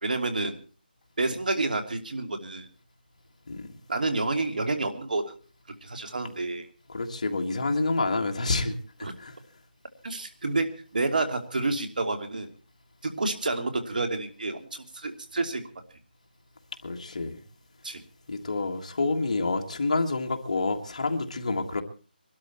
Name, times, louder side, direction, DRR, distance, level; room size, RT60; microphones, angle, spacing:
voice 1, 0.0-0.6 1.2-2.7 3.9-5.3 5.8-6.7 9.0-9.1 10.0-12.5 13.0-15.6 17.8-18.0, right 3 dB, 55° right, 7 dB, 2.8 m, -29 dB
voice 2, 6.9-9.4 16.8-17.4 18.3-21.8, left 3 dB, 40° left, 4 dB, 1.8 m, -28 dB
22.5 x 12.5 x 4.4 m, 0.37 s
figure-of-eight pair, 175°, 5 cm